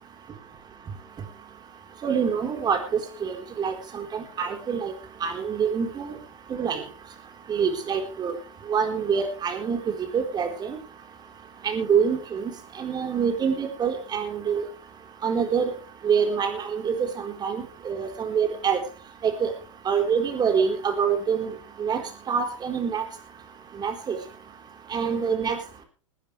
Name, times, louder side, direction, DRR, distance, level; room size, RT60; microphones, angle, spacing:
voice 1, 2.0-2.8 3.2-4.9 5.2-6.1 6.5-6.8 7.5-8.3 8.7-9.8 10.1-10.8 11.6-12.5 12.8-14.6 15.2-15.7 16.0-18.8 19.2-19.5 19.9-21.5 21.8-22.0 22.3-23.0 23.8-24.2 24.9-25.6, right 6 dB, 25° right, 4 dB, 4.2 m, -25 dB
20.5 x 12.0 x 3.4 m, 0.36 s
hypercardioid pair, 115°, 16 cm